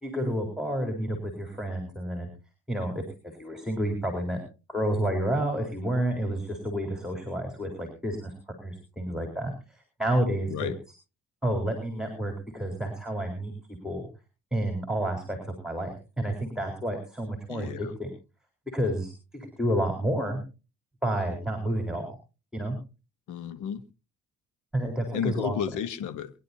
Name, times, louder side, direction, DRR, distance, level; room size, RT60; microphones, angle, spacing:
voice 1, 0.0-2.3 2.7-3.0 3.4-4.4 4.7-8.3 8.6-10.7 11.4-13.5 13.8-14.0 14.5-15.4 15.6-18.1 18.7-20.4 21.0-22.2 22.5-22.7 24.7-25.6, right 1 dB, ahead, 4 dB, 4.1 m, -30 dB
voice 2, 17.5-17.9 23.3-23.8 25.1-26.3, left 8 dB, 80° left, 12 dB, 1.2 m, -32 dB
23.5 x 11.0 x 2.8 m, 0.32 s
cardioid pair, 90°, 30 cm